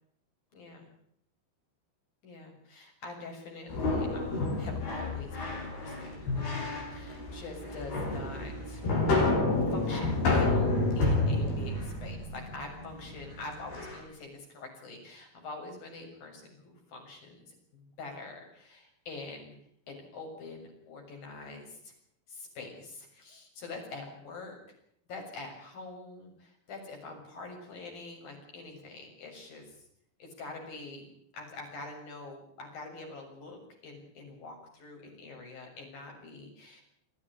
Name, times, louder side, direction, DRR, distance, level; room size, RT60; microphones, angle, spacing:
voice 1, 0.5-0.9 2.2-8.8 9.7-19.6 19.9-21.9 22.3-24.6 25.1-29.8 30.2-36.8, left 3 dB, 65° left, 2 dB, 8.7 m, -45 dB
sound 1, 3.7-14.0, left 2 dB, 80° left, 9.2 m, -30 dB
26.0 x 15.0 x 10.0 m, 0.69 s
omnidirectional pair, 4.5 m